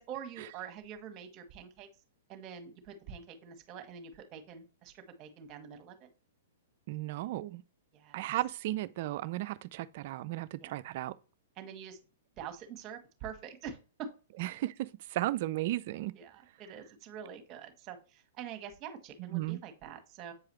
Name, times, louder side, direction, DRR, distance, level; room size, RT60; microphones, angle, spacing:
voice 1, 0.0-1.9 2.3-6.1 7.9-8.3 10.6-10.7 11.6-12.0 12.4-14.1 16.1-20.3, right 7 dB, 35° right, 1.6 m, -45 dB
voice 2, 6.9-7.6 8.1-11.1 14.4-16.1 19.3-19.6, right 16 dB, 50° right, 0.5 m, -35 dB
8.2 x 4.8 x 3.1 m
hypercardioid pair, 115°, 0 cm